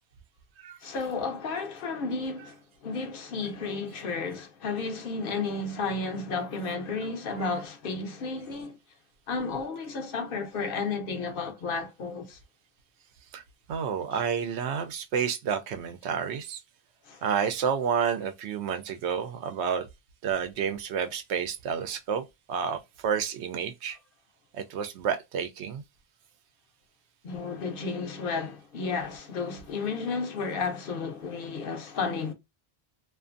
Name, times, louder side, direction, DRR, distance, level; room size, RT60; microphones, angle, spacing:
voice 1, 0.8-8.8 9.3-12.4 17.0-17.2 27.2-32.3, left 4 dB, 60° left, 0.8 m, -32 dB
voice 2, 13.7-16.6 17.2-19.9 20.2-24.0 24.5-25.8, right 7 dB, 90° right, 0.9 m, -30 dB
2.5 x 2.5 x 2.4 m
omnidirectional pair, 1.1 m